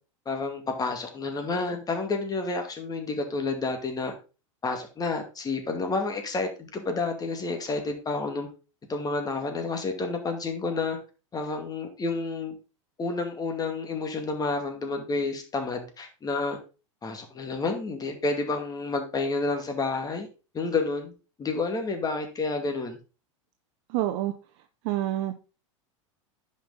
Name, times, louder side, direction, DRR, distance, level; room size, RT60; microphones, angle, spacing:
voice 1, 0.3-4.1 4.6-8.5 8.9-11.0 11.3-12.5 13.0-16.6 17.0-20.3 20.5-21.1 21.4-23.0, left 3 dB, 25° left, 2.2 m, -30 dB
voice 2, 23.9-24.3 24.8-25.3, right 14 dB, 55° right, 0.8 m, -27 dB
10.0 x 5.3 x 3.9 m
hypercardioid pair, 95°, 16 cm